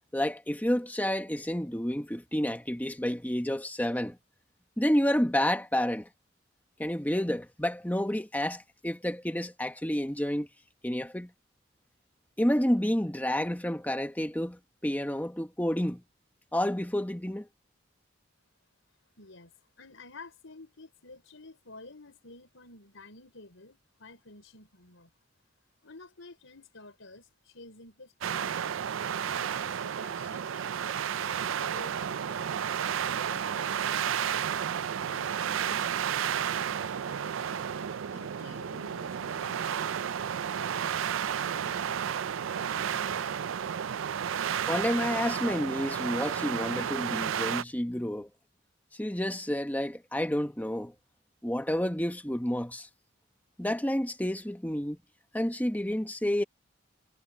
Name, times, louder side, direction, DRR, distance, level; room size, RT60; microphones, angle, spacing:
voice 1, 0.1-4.2 4.8-6.1 6.8-10.5 10.8-11.3 12.4-16.0 16.5-17.5 44.7-48.3 49.0-50.9 51.4-52.9 53.6-55.0 55.3-56.4, equal, 10° left, 1.4 m, -29 dB
voice 2, 19.2-19.5 19.8-25.1 25.8-28.6 29.2-32.5 33.1-36.1 36.5-40.0 40.5-43.4, left 2 dB, 85° left, 4.6 m, -51 dB
sound 1, 28.2-47.6, right 8 dB, 85° right, 0.4 m, -32 dB
head